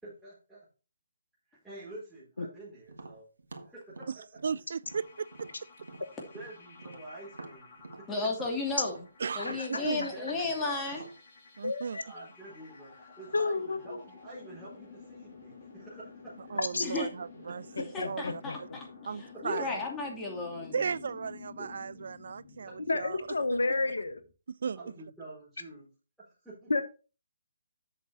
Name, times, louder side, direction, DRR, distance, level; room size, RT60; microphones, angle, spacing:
voice 1, 0.0-0.7 1.5-3.3 3.6-4.1 6.3-7.7 8.0-8.2 9.7-10.8 12.0-16.6 21.6-21.7 22.7-23.0 24.8-25.9 26.2-26.7, right 2 dB, ahead, 4.1 m, -48 dB
Tap, 2.9-6.5 6.8-11.2, right 2 dB, 80° right, 1.7 m, -48 dB
voice 2, 4.4-5.5 9.2-10.1 11.6-12.0 16.5-18.7 19.0-19.8 20.7-23.2 23.5-23.6 24.6-24.8, right 6 dB, 65° right, 0.4 m, -36 dB
sound 1, 4.8-24.3, left 5 dB, 40° left, 3.6 m, -52 dB
voice 3, 8.1-9.0 9.3-11.0 16.8-17.1 17.8-20.9, left 3 dB, 15° left, 2.7 m, -34 dB
voice 4, 11.6-12.0 13.3-14.0 16.7-16.9 17.7-18.8 22.9-24.2 26.7-26.8, left 3 dB, 80° left, 1.2 m, -31 dB
7.9 x 6.0 x 4.3 m
figure-of-eight pair, 145°, 0 cm